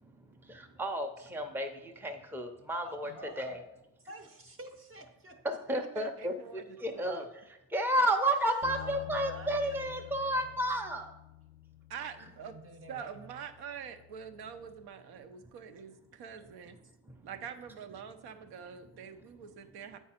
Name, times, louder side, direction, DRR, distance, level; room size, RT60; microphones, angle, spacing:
voice 1, 0.5-3.1 3.4-3.6 5.4-7.2 7.7-11.1, right 1 dB, 5° right, 5 dB, 0.6 m, -32 dB
voice 2, 2.8-3.6 4.0-5.4 8.0-10.6 12.2-13.4, right 1 dB, 35° right, 4 dB, 0.9 m, -48 dB
voice 3, 5.7-7.3 11.9-12.5 12.9-16.8 17.2-20.0, right 7 dB, 75° right, 9 dB, 0.8 m, -45 dB
Bass guitar, 8.6-14.9, left 16 dB, 50° left, 0.5 m, -50 dB
8.6 x 4.7 x 4.3 m, 0.87 s
cardioid pair, 135°, 39 cm